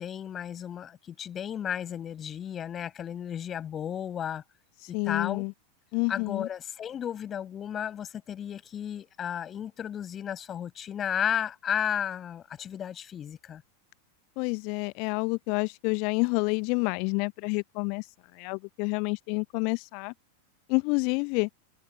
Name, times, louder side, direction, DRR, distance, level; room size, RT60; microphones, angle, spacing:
voice 1, 0.0-4.4 4.9-5.5 6.1-13.6, left 9 dB, 25° left, 5.7 m, -33 dB
voice 2, 4.9-5.5 5.9-6.5 14.4-18.0 18.3-20.1 20.7-21.5, left 36 dB, 45° left, 0.9 m, -28 dB
figure-of-eight pair, 90°, 0 cm